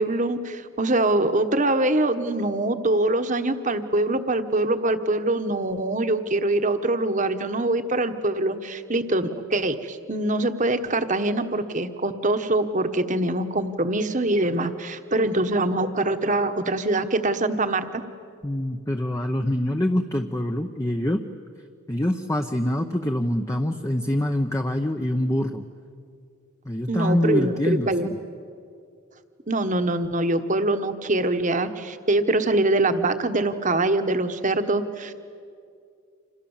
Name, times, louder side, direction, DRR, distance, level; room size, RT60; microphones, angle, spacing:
voice 1, 0.0-18.0 26.9-28.1 29.5-35.2, right 2 dB, 35° right, 9 dB, 1.3 m, -24 dB
voice 2, 18.4-21.2 21.9-25.7 26.7-28.1, left 1 dB, 15° left, 4 dB, 0.8 m, -25 dB
29.5 x 27.0 x 7.3 m, 2.3 s
head